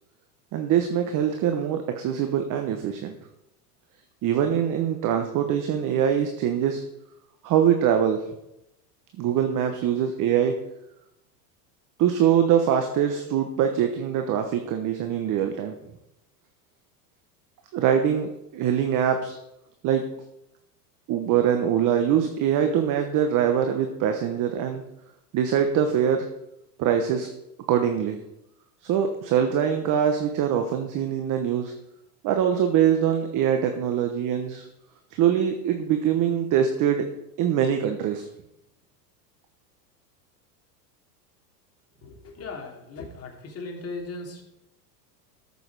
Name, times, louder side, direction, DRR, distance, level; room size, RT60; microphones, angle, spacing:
voice 1, 0.5-3.1 4.2-6.8 7.4-8.2 9.2-10.5 12.0-15.7 17.7-19.4 19.8-20.0 21.1-24.8 25.3-26.3 26.8-27.3 27.7-28.2 28.8-31.7 32.2-34.7 35.1-37.0 37.4-38.3, right 9 dB, 40° right, 6 dB, 1.2 m, -23 dB
voice 2, 42.0-44.4, left 3 dB, 30° left, 1 dB, 2.8 m, -38 dB
13.5 x 6.8 x 4.8 m, 0.85 s
hypercardioid pair, 115°, 49 cm